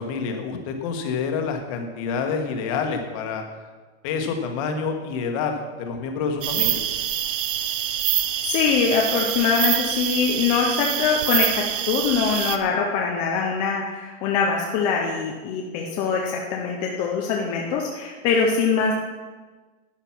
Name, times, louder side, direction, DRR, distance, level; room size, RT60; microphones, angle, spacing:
voice 1, 0.0-3.4 4.0-6.8, left 5 dB, 30° left, 4 dB, 1.4 m, -27 dB
sound 1, 6.4-12.6, right 11 dB, 55° right, 0.8 m, -25 dB
voice 2, 8.4-18.9, left 5 dB, 15° left, -1 dB, 0.5 m, -23 dB
12.0 x 8.8 x 5.9 m, 1.3 s
supercardioid pair, 175°, 33 cm